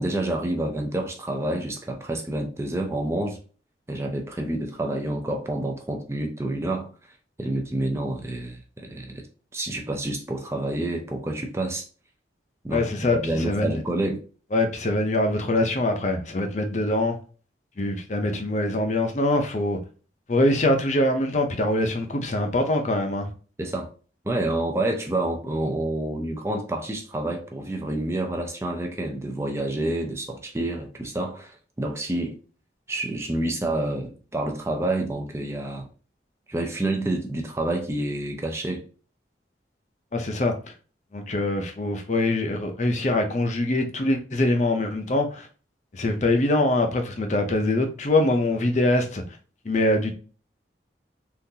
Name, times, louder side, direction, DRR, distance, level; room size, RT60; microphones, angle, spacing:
voice 1, 0.0-3.4 3.9-6.9 7.4-9.2 9.5-11.9 12.6-14.2 23.6-23.9 24.2-32.4 32.9-35.8 36.5-38.8, right 1 dB, 15° right, 0.4 m, -28 dB
voice 2, 12.7-13.7 14.5-17.2 17.8-19.8 20.3-23.3 40.1-40.5 41.1-45.5 45.9-49.2 49.6-50.1, left 1 dB, 40° left, 0.6 m, -23 dB
3.7 x 2.5 x 2.7 m
head